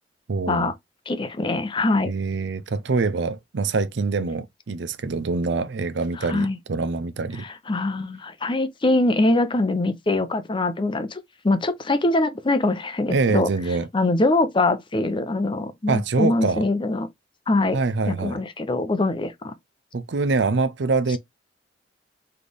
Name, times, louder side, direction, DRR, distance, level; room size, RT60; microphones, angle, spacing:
voice 1, 0.3-0.7 2.1-7.5 13.1-13.9 15.9-16.7 17.7-18.4 19.9-21.2, right 3 dB, 70° right, 0.5 m, -24 dB
voice 2, 1.1-2.1 6.2-6.6 7.4-13.5 13.9-17.1 17.5-17.8 18.1-19.5, left 2 dB, 25° left, 0.6 m, -23 dB
4.1 x 3.3 x 3.4 m
head